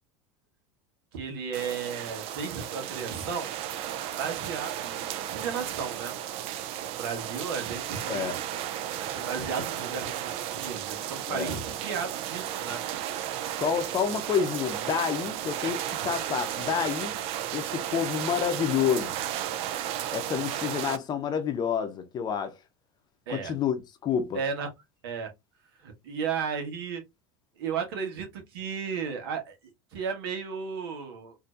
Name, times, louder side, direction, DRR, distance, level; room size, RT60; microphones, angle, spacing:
voice 1, 1.1-3.6 4.1-6.1 6.9-8.4 9.0-12.8 23.3-23.5 24.3-24.7 25.0-25.3 25.8-27.0 27.6-29.6 29.9-31.4, right 6 dB, 75° right, 1.4 m, -34 dB
sound 1, 1.5-21.0, right 11 dB, 50° right, 0.5 m, -34 dB
voice 2, 8.1-8.4 11.3-11.5 13.6-17.1 17.5-19.2 20.1-22.5 23.3-24.4, left 8 dB, 35° left, 0.7 m, -29 dB
4.2 x 2.8 x 2.4 m
hypercardioid pair, 105°, 13 cm